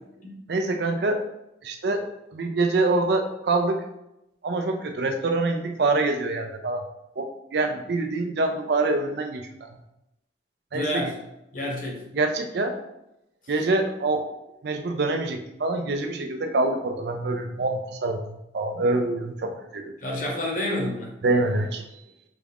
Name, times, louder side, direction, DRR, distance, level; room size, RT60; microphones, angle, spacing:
voice 1, 0.5-1.2 1.6-3.8 4.4-6.8 7.2-9.7 10.7-11.0 12.1-12.8 13.5-14.2 14.6-19.9 21.2-21.8, right 2 dB, 60° right, 5 dB, 0.4 m, -25 dB
voice 2, 10.7-11.1 11.5-12.0 20.0-21.1, left 1 dB, 45° left, -1 dB, 0.8 m, -29 dB
4.0 x 2.4 x 3.5 m, 0.87 s
head